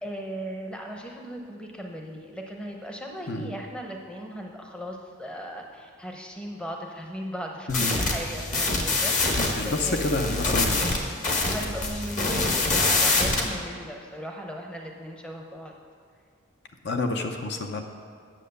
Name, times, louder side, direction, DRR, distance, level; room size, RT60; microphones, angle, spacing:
voice 1, 0.0-10.4 11.4-15.7, equal, 5° left, 1 dB, 0.7 m, -37 dB
voice 2, 7.7-8.0 9.4-10.9 16.8-17.8, left 2 dB, 55° left, 4 dB, 0.7 m, -28 dB
sound 1, 7.7-13.5, left 3 dB, 35° left, 1.1 m, -25 dB
9.0 x 7.3 x 6.7 m, 2.1 s
head